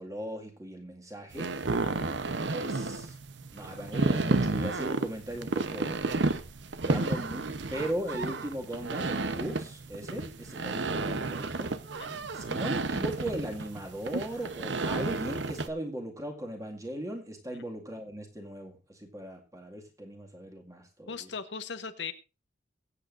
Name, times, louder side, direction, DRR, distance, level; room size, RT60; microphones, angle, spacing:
voice 1, 0.0-1.5 2.5-3.1 3.5-6.0 6.8-11.7 12.3-21.3, right 1 dB, 20° right, 2 dB, 2.0 m, -38 dB
sound 1, 1.3-15.7, right 3 dB, 80° right, 0.8 m, -32 dB
voice 2, 21.1-22.1, left 5 dB, 70° left, 9 dB, 1.0 m, -39 dB
23.0 x 8.0 x 2.6 m, 0.30 s
head